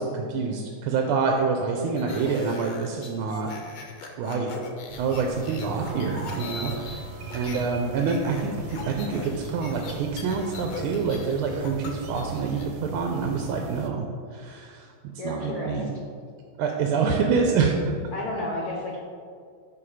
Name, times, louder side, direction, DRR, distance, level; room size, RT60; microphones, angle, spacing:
voice 1, 0.0-3.5 4.2-4.5 5.0-7.0 7.3-14.9 15.2-15.9 16.6-17.7, right 5 dB, 90° right, 2 dB, 1.4 m, -27 dB
sound 1, 1.8-7.7 8.0-12.7, left 5 dB, 85° left, 1.6 m, -39 dB
sound 2, 4.9-13.9, right 5 dB, 70° right, 1.3 m, -39 dB
Piano, 5.8-12.6, right 2 dB, 10° left, 0.8 m, -47 dB
voice 2, 15.2-15.9 18.1-19.0, left 1 dB, 60° left, -3 dB, 1.0 m, -31 dB
5.6 x 4.9 x 4.8 m, 2.2 s
omnidirectional pair, 2.3 m